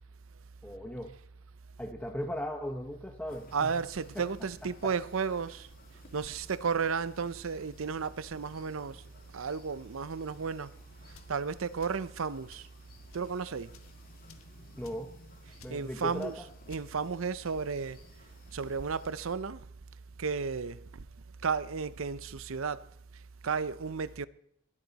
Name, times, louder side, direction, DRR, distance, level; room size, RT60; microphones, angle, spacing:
voice 1, 0.6-1.2 1.8-3.8 4.1-4.3 4.8-5.0 14.8-15.1 15.6-16.5, equal, 5° left, 1.0 m, -38 dB
sound 1, 3.3-19.3, left 2 dB, 45° left, 2.3 m, -58 dB
voice 2, 3.5-5.7 6.1-9.0 9.3-10.7 11.3-12.7 13.1-13.7 15.7-16.3 16.7-18.0 18.5-19.6 20.2-21.0 21.4-22.8 23.4-24.3, right 5 dB, 70° right, 0.6 m, -33 dB
sound 2, 11.1-11.4 11.8-12.1 12.5-12.7 13.1-13.3 13.7-13.9 14.3-14.5 14.8-15.1 15.6-15.8 16.2-16.3 16.7-16.9, left 4 dB, 85° left, 1.5 m, -56 dB
22.0 x 12.5 x 4.1 m
head